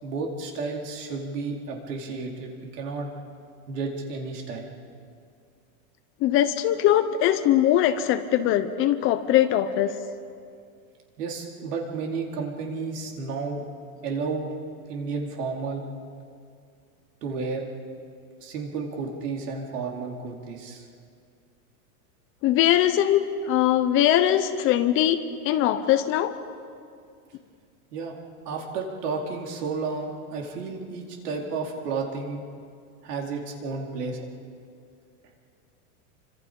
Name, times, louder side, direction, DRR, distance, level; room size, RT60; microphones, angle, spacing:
voice 1, 0.0-3.1 3.7-4.7 11.2-13.6 14.0-14.5 14.9-15.9 17.2-17.6 18.4-20.9 27.9-28.1 28.4-32.4 33.0-34.3, right 4 dB, 75° right, 0 dB, 4.4 m, -32 dB
voice 2, 6.2-9.9 22.4-26.3, left 11 dB, 25° left, 11 dB, 0.7 m, -21 dB
29.0 x 25.0 x 5.4 m, 2.3 s
supercardioid pair, 155°, 47 cm